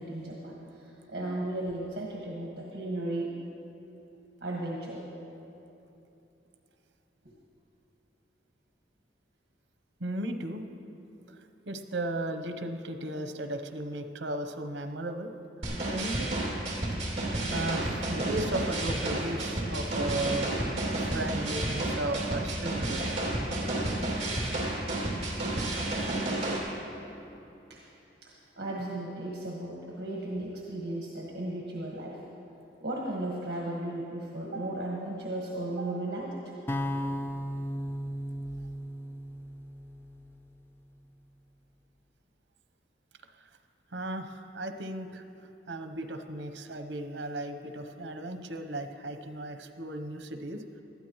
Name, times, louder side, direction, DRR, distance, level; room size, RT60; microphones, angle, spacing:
voice 1, 0.0-3.3 4.4-5.0 16.9-17.0 27.7-27.8 28.2-32.2 32.8-36.5, right 1 dB, 60° right, -3 dB, 1.5 m, -35 dB
voice 2, 10.0-10.7 11.3-11.4 11.7-15.3 15.9-16.3 17.5-20.5 21.0-23.1 43.9-50.6, right 1 dB, 85° right, 8 dB, 0.8 m, -35 dB
sound 1, 15.6-26.6, right 1 dB, 35° right, 2.5 m, -31 dB
sound 2, 36.7-40.8, equal, 10° left, 0.3 m, -36 dB
19.5 x 12.5 x 3.1 m, 2.9 s
head